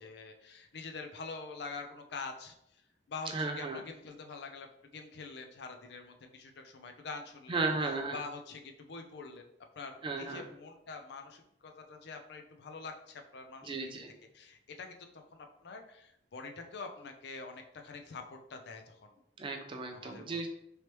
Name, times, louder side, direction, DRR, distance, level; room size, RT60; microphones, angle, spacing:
voice 1, 0.0-2.6 3.1-4.7 4.9-7.6 8.1-9.4 9.8-13.7 14.3-19.2 19.9-20.5, left 4 dB, 65° left, 5 dB, 0.5 m, -45 dB
voice 2, 3.3-3.8 7.5-8.2 10.0-10.4 13.6-14.1 19.4-20.5, right 3 dB, 30° right, 4 dB, 0.4 m, -35 dB
3.2 x 3.0 x 2.9 m, 0.76 s
head